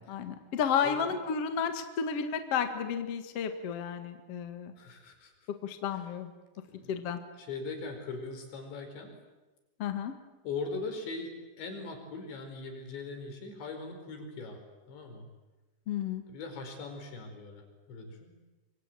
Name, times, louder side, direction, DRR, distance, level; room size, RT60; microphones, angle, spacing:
voice 1, 0.0-4.7 5.6-6.3 6.9-7.2 9.8-10.1 15.9-16.2, left 7 dB, 50° left, 7 dB, 1.8 m, -32 dB
voice 2, 0.8-1.2 4.8-5.3 5.9-6.1 6.7-6.9 7.4-9.1 10.4-11.3 11.6-14.6 14.9-15.3 16.3-18.3, left 3 dB, 70° left, 4 dB, 6.9 m, -40 dB
25.5 x 25.5 x 9.1 m, 1.2 s
omnidirectional pair, 5.3 m